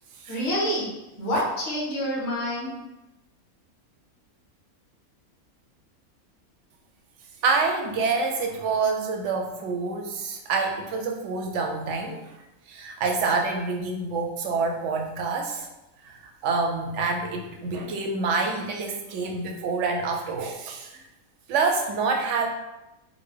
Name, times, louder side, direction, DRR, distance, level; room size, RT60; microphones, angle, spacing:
voice 1, 0.3-0.9 1.2-2.7, equal, 50° left, -5 dB, 1.2 m, -27 dB
voice 2, 7.4-12.2 12.7-15.7 16.0-20.9 21.5-22.5, right 4 dB, 65° right, 2 dB, 0.8 m, -27 dB
3.8 x 2.1 x 3.3 m, 0.96 s
omnidirectional pair, 1.5 m